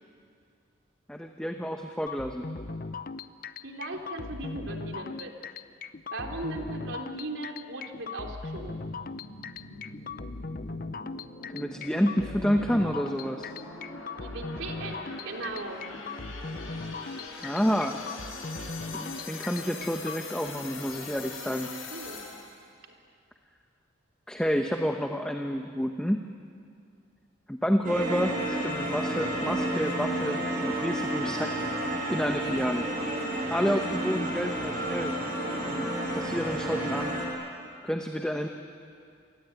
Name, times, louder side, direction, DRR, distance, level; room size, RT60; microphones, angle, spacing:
voice 1, 1.1-2.4 11.5-13.5 17.4-18.0 18.9-21.7 24.3-26.2 27.5-31.5 32.1-32.9 33.5-35.1 35.6-37.1 37.8-38.5, equal, 5° left, 3 dB, 1.0 m, -29 dB
sound 1, 2.1-20.2, left 3 dB, 45° left, 0.7 m, -39 dB
voice 2, 3.6-5.4 6.1-8.8 14.2-15.8 21.9-22.2, right 2 dB, 75° right, 2 dB, 3.5 m, -38 dB
sound 2, 8.6-22.6, left 3 dB, 90° left, 6.7 m, -42 dB
sound 3, 27.8-37.3, right 1 dB, 40° right, 7.0 m, -31 dB
28.0 x 22.0 x 9.4 m, 2.3 s
head